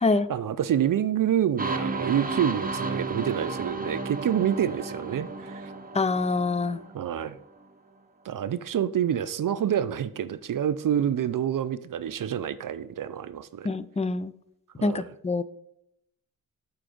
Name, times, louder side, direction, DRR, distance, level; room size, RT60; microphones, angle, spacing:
voice 1, 0.3-5.7 6.9-7.4 8.2-13.7 14.8-15.1, right 10 dB, 60° right, 13 dB, 0.5 m, -27 dB
sound 1, 1.6-7.3, right 3 dB, 25° right, 1.0 m, -33 dB
voice 2, 5.9-6.8 13.6-14.3 14.8-15.4, left 3 dB, 20° left, 15 dB, 0.5 m, -25 dB
7.6 x 4.7 x 5.0 m, 0.79 s
cardioid pair, 65°, 37 cm